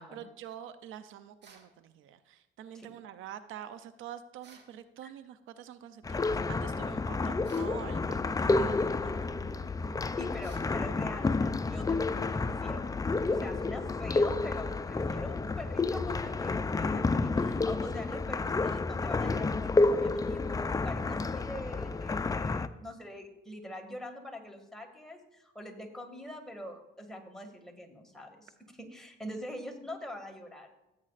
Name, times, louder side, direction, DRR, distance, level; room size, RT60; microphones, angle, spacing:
voice 1, 0.0-9.3 9.6-9.7, right 10 dB, 90° right, 12 dB, 0.6 m, -46 dB
sound 1, 1.4-1.7 4.4-4.7 7.4-7.8 10.4-10.7, right 5 dB, 60° right, 1.8 m, -55 dB
sound 2, 6.0-22.7, left 3 dB, 20° left, 0.4 m, -30 dB
voice 2, 10.2-12.9 13.3-30.7, left 1 dB, ahead, 1 dB, 2.0 m, -44 dB
15.0 x 8.6 x 2.5 m, 0.95 s
cardioid pair, 90°, 20 cm